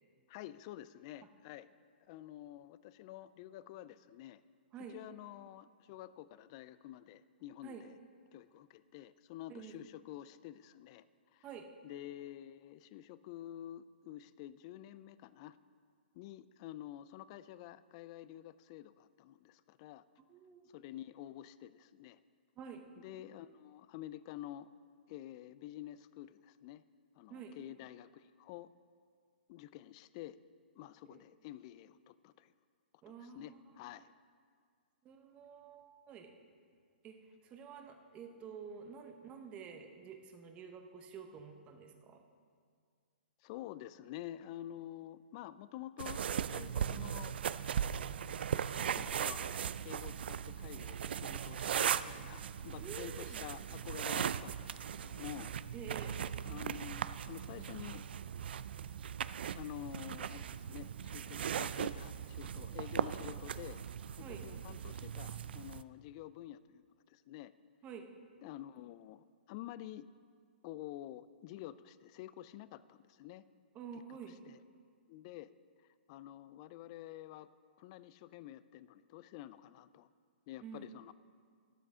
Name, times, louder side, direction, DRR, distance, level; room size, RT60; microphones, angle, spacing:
voice 1, 0.3-1.7 2.0-4.4 4.9-8.0 8.3-11.1 11.3-11.4 11.8-15.6 16.1-20.0 20.7-22.2 23.0-24.7 25.1-26.8 27.1-28.7 29.5-30.4 30.8-32.5 33.2-34.1 43.4-46.2 46.5-47.4 48.9-49.6 49.8-55.5 56.0-56.1 56.4-58.0 59.5-63.8 64.2-67.5 68.4-70.1 70.6-73.4 73.9-74.0 74.5-74.6 75.1-75.5 76.1-77.5 77.8-80.1 80.5-81.1, left 13 dB, 30° left, 16 dB, 0.3 m, -49 dB
voice 2, 20.3-20.6 22.6-22.9 27.3-27.6 31.1-31.2 33.0-33.6 35.0-36.3 37.0-42.2 52.8-53.4 55.7-56.2 64.2-64.4 67.8-68.1 73.7-74.4 80.6-80.9, right 6 dB, 20° right, 5 dB, 0.8 m, -49 dB
sound 1, 46.0-65.8, right 8 dB, 70° right, 0.3 m, -38 dB
12.0 x 11.0 x 3.6 m, 2.1 s
hypercardioid pair, 155°, 6 cm